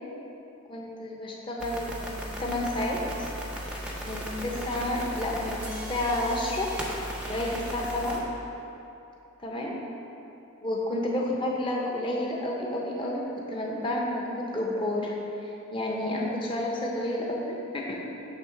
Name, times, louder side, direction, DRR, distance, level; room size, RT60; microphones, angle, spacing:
voice 1, 0.7-3.3 4.0-6.7 7.0-8.2 9.4-9.8 10.6-15.1 15.4-18.0, left 1 dB, 25° left, -2 dB, 0.9 m, -30 dB
sound 1, 1.6-8.2, equal, 5° right, 0.7 m, -36 dB
8.7 x 3.6 x 5.9 m, 2.9 s
head